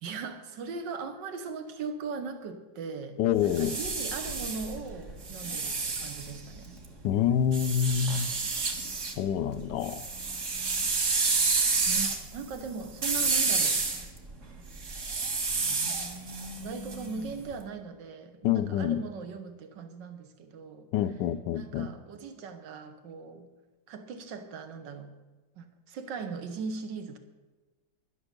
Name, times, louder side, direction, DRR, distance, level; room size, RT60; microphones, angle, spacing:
voice 1, 0.0-6.7 11.9-13.8 16.6-20.9 21.5-23.5 23.9-25.1 25.6-27.2, right 5 dB, 70° right, 1.8 m, -39 dB
voice 2, 3.2-3.7 7.0-8.3 9.2-10.1 18.4-19.0 20.9-21.9, left 9 dB, 75° left, 1.2 m, -27 dB
sound 1, 3.3-6.8 7.5-9.2 9.5-17.4, right 4 dB, 45° right, 1.6 m, -30 dB
11.0 x 9.7 x 6.6 m
omnidirectional pair, 2.0 m